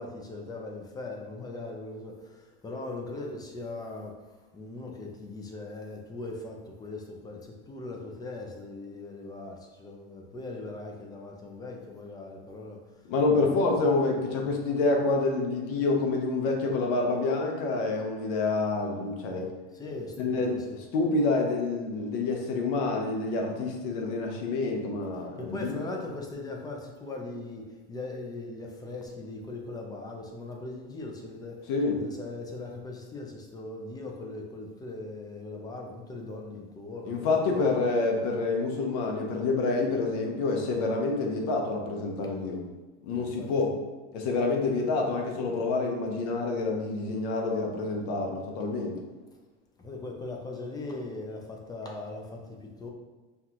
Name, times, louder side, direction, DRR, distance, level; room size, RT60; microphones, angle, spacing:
voice 1, 0.0-4.2 4.5-13.1 13.4-13.7 19.7-20.8 25.4-31.7 32.0-37.6 43.1-43.5 49.8-52.9, left 2 dB, 10° left, 1 dB, 0.5 m, -40 dB
voice 2, 13.0-19.5 20.2-20.6 20.9-25.7 31.7-32.0 37.1-42.6 43.0-43.8 44.1-49.0, left 3 dB, 60° left, 1 dB, 1.0 m, -27 dB
5.7 x 2.4 x 2.9 m, 1.3 s
supercardioid pair, 130°, 35 cm